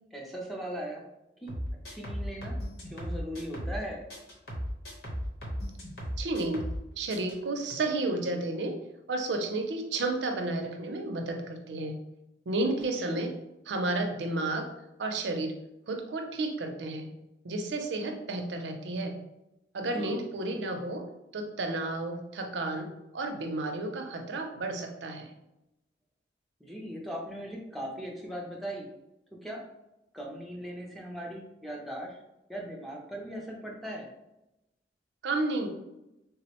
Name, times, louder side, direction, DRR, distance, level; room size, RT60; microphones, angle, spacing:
voice 1, 0.1-1.1 1.4-1.5 1.9-2.6 2.9-4.0 13.0-13.2 19.9-20.1 26.6-28.9 29.4-29.6 30.1-32.2 32.5-34.1, equal, ahead, -3 dB, 0.4 m, -39 dB
sound 1, 1.5-3.8 4.1-6.8 7.1-7.3, equal, 70° left, 1.0 m, -36 dB
voice 2, 6.2-6.7 7.0-8.8 9.1-12.0 12.5-13.4 13.7-14.7 15.0-15.6 15.9-17.1 17.4-19.2 19.7-21.1 21.3-25.3 35.2-35.7, right 2 dB, 90° right, 4 dB, 0.5 m, -32 dB
3.6 x 2.0 x 2.9 m, 0.90 s
head